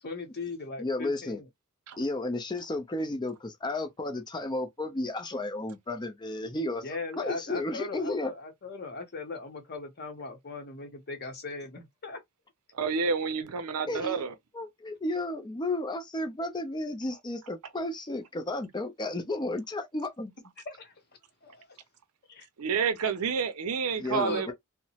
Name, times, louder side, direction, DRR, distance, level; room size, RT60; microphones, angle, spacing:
voice 1, 0.0-1.5 6.8-12.2 20.7-20.9 21.4-21.8 22.3-22.5 23.9-24.5, left 3 dB, 45° left, 0.8 m, -39 dB
voice 2, 0.8-1.4 2.0-6.8 7.2-8.3 13.9-14.2 14.5-20.3 24.0-24.5, left 2 dB, 20° left, 0.5 m, -33 dB
voice 3, 12.8-14.3 22.6-24.5, right 5 dB, 75° right, 0.5 m, -29 dB
2.9 x 2.1 x 2.7 m
head